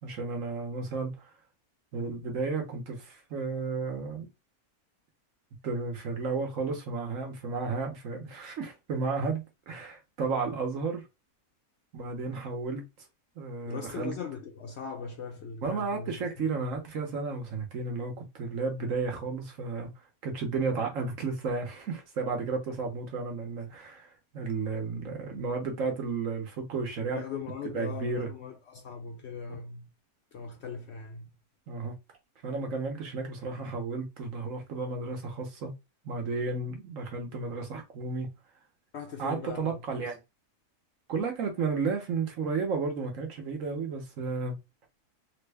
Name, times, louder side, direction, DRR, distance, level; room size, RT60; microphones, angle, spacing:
voice 1, 0.0-1.3 1.9-4.3 5.6-11.0 11.9-12.9 13.4-14.1 15.6-19.9 20.2-27.2 27.7-28.3 31.7-31.9 32.4-35.7 36.0-38.3 39.2-40.1 41.1-44.6, right 4 dB, 60° right, 1.2 m, -33 dB
voice 2, 13.7-16.7 27.1-29.9 30.3-31.3 38.9-40.1, left 5 dB, 65° left, 0.7 m, -40 dB
3.4 x 2.2 x 3.3 m
omnidirectional pair, 1.6 m